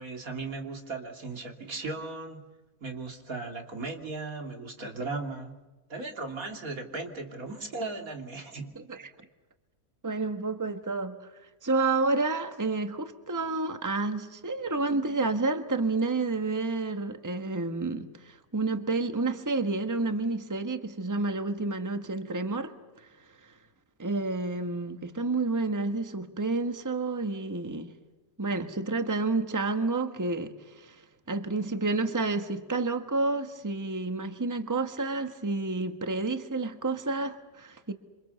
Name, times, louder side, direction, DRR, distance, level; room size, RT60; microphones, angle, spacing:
voice 1, 0.0-2.5 2.8-5.6 5.9-8.7, right 3 dB, 80° right, 3.3 m, -37 dB
voice 2, 8.7-9.1 10.0-11.2 11.6-22.7 23.0-23.1 24.0-27.9 28.4-31.0 31.3-37.9, right 3 dB, 15° right, 1.3 m, -30 dB
27.5 x 26.5 x 7.0 m
omnidirectional pair, 1.5 m